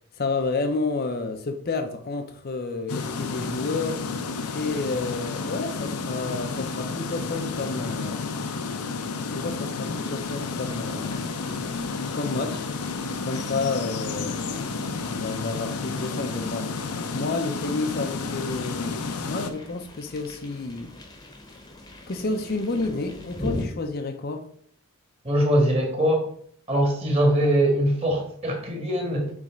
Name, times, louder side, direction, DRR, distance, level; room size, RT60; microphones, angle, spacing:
voice 1, 0.2-4.0 4.5-8.2 9.3-11.4 12.1-12.7 13.2-14.6 15.0-16.7 17.1-20.9 22.1-24.5, left 3 dB, 45° left, 0.5 m, -30 dB
sound 1, 2.9-19.5, left 4 dB, 90° left, 0.7 m, -31 dB
sound 2, 10.0-23.7, left 1 dB, 20° left, 0.9 m, -42 dB
voice 2, 25.2-26.3 26.7-29.3, right 1 dB, 25° right, 1.7 m, -22 dB
7.1 x 3.3 x 5.1 m
head